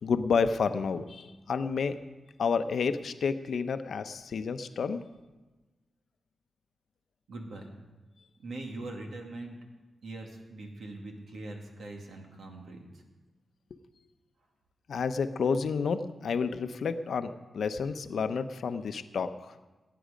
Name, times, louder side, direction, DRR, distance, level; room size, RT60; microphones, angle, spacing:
voice 1, 0.0-2.0 2.4-5.0 13.7-13.8 14.9-19.5, left 5 dB, 75° left, 10 dB, 0.7 m, -30 dB
voice 2, 7.3-7.7 8.4-9.6 10.0-12.8, right 2 dB, 75° right, 2 dB, 2.3 m, -42 dB
18.0 x 9.4 x 5.1 m, 1.2 s
wide cardioid pair, 105°, 0 cm